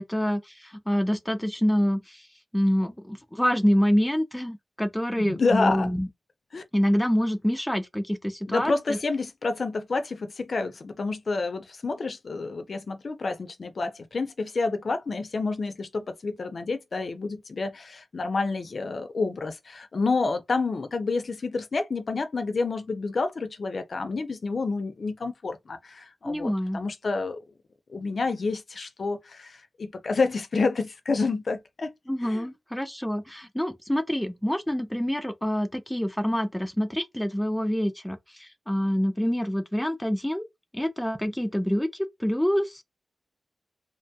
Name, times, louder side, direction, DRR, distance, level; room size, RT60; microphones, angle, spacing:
voice 1, 0.0-2.3 2.5-6.1 6.7-9.0 26.2-26.8 32.1-40.4 40.7-42.8, equal, 5° left, 0.4 m, -26 dB
voice 2, 5.2-5.9 6.5-6.6 8.5-27.4 27.9-31.9 32.2-32.5, left 3 dB, 55° left, 0.5 m, -29 dB
3.0 x 2.2 x 2.6 m
wide cardioid pair, 95°, 0 cm